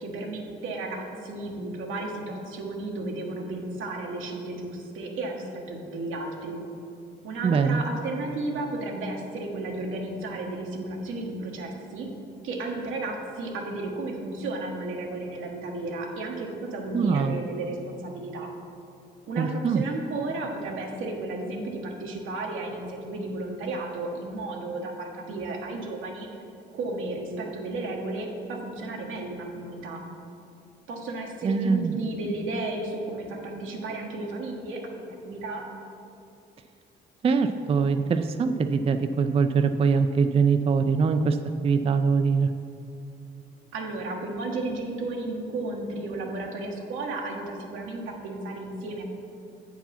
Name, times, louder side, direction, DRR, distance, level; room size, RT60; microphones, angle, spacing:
voice 1, 0.0-6.6 7.2-12.1 12.4-18.5 19.3-26.3 26.7-30.0 30.9-34.8 35.2-35.6 43.7-49.0, right 2 dB, 85° right, 0 dB, 1.2 m, -33 dB
voice 2, 7.4-7.8 16.9-17.3 19.4-19.8 31.4-32.0 37.2-41.4 41.6-42.5, right 5 dB, 30° right, 8 dB, 0.3 m, -23 dB
8.0 x 4.7 x 5.7 m, 2.6 s
cardioid pair, 90°, 20 cm